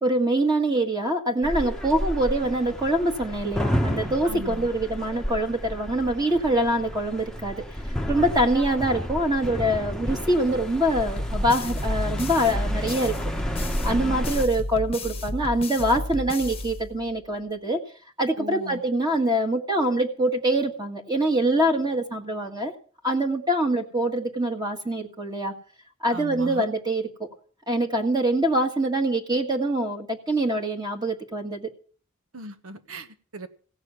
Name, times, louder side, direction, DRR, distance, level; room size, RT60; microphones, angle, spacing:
voice 1, 0.0-7.6 8.1-13.1 13.8-17.8 18.2-22.7 23.0-25.5 26.0-27.3 27.7-31.7, right 1 dB, 20° right, 2 dB, 1.6 m, -24 dB
sound 1, 1.4-14.5, equal, 5° left, 1.0 m, -31 dB
voice 2, 4.2-4.7 13.9-14.2 18.4-18.8 26.1-26.6 32.3-33.5, right 1 dB, 85° right, 10 dB, 1.5 m, -38 dB
sound 2, 11.2-17.3, left 1 dB, 30° left, 1.0 m, -33 dB
16.5 x 6.6 x 9.5 m, 0.42 s
head